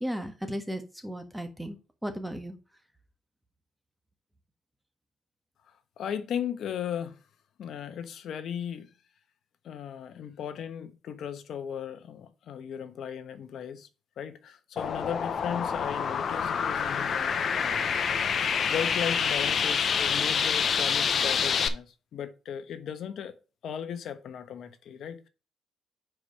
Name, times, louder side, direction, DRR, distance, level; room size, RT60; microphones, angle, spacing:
voice 1, 0.0-2.6, equal, 5° right, 1.5 m, -35 dB
voice 2, 6.0-7.2 7.6-8.9 9.6-13.9 14.2-18.0 18.4-23.3 23.6-25.3, left 8 dB, 70° left, 1.1 m, -37 dB
sound 1, 14.8-21.7, left 6 dB, 55° left, 0.8 m, -27 dB
4.9 x 4.8 x 6.2 m
cardioid pair, 90°, 0 cm